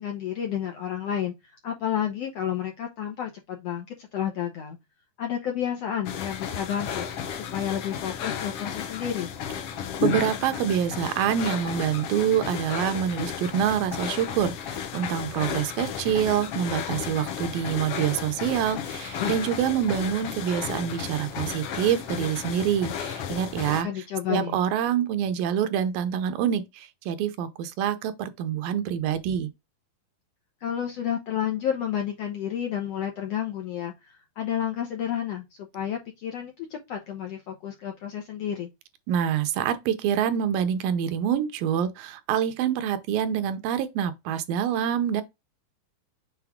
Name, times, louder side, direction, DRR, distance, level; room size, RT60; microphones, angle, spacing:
voice 1, 0.0-4.8 5.2-7.1 7.3-9.3 23.8-24.6 30.6-38.7, left 9 dB, 70° left, 1.5 m, -31 dB
sound 1, 6.0-23.8, left 8 dB, 90° left, 1.3 m, -33 dB
voice 2, 10.0-23.9 24.3-29.5 39.1-45.2, right 9 dB, 80° right, 2.5 m, -26 dB
7.1 x 4.0 x 3.6 m
omnidirectional pair, 4.1 m